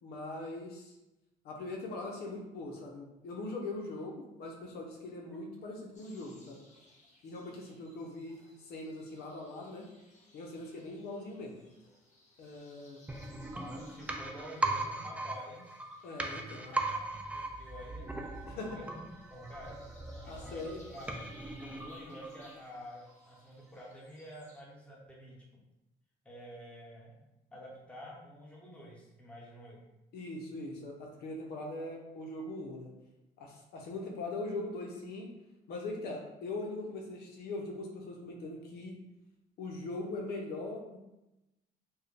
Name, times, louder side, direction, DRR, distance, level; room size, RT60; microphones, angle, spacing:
voice 1, 0.0-1.0 1.4-6.6 7.2-9.9 10.3-11.6 12.4-13.0 16.0-16.8 18.5-18.8 20.2-20.8 30.1-32.9 33.4-35.3 35.7-39.0 39.6-41.0, left 2 dB, 70° left, 0 dB, 0.7 m, -41 dB
sound 1, 5.9-24.6, left 1 dB, 45° left, 1.1 m, -63 dB
sound 2, 13.1-22.8 23.1-23.2, right 2 dB, 10° right, 0.3 m, -39 dB
voice 2, 13.3-15.8 16.4-16.5 17.1-19.0 19.3-19.8 20.2-20.6 20.9-25.6 26.2-27.2 27.5-29.8, equal, 5° left, -4 dB, 1.1 m, -50 dB
4.5 x 2.2 x 3.2 m, 0.94 s
cardioid pair, 110°, 17 cm